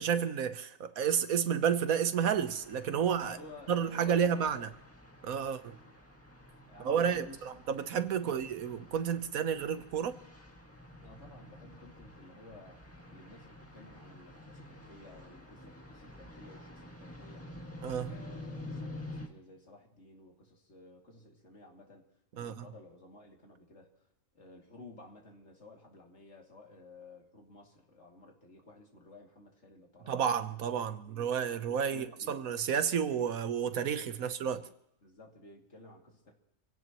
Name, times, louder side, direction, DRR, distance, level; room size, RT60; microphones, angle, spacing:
voice 1, 0.0-3.4 3.7-4.7 5.2-5.6 6.8-7.3 7.7-10.2 17.8-18.1 22.4-22.6 30.1-34.6, right 7 dB, 85° right, 1.4 m, -31 dB
sound 1, 2.2-19.3, left 1 dB, 10° left, 1.7 m, -49 dB
voice 2, 3.0-4.7 5.2-6.0 6.7-7.5 8.2-8.4 11.0-12.8 13.1-17.5 18.1-22.0 22.3-23.9 24.3-30.2 31.0-31.3 31.6-32.4 34.0-34.3 35.0-36.3, left 2 dB, 55° left, 2.9 m, -54 dB
27.0 x 17.0 x 3.0 m
omnidirectional pair, 1.4 m